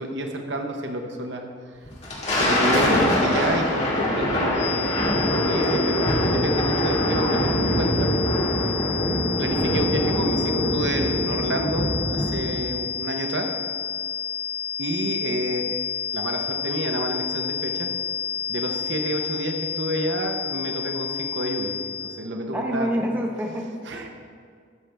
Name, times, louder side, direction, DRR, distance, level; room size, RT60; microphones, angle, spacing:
voice 1, 0.0-1.4 2.3-4.9 5.3-8.1 9.4-13.5 14.8-15.6 16.1-17.9 18.5-21.7 22.0-23.0 23.9-24.1, right 1 dB, 75° right, 3 dB, 1.0 m, -29 dB
Thunder, 1.9-12.6, left 1 dB, 35° left, 2.1 m, -23 dB
sound 1, 4.5-22.3, left 8 dB, 70° left, 0.5 m, -30 dB
voice 2, 8.8-9.1 22.5-24.1, equal, 10° right, 0 dB, 0.8 m, -28 dB
12.0 x 7.4 x 3.4 m, 2.1 s
head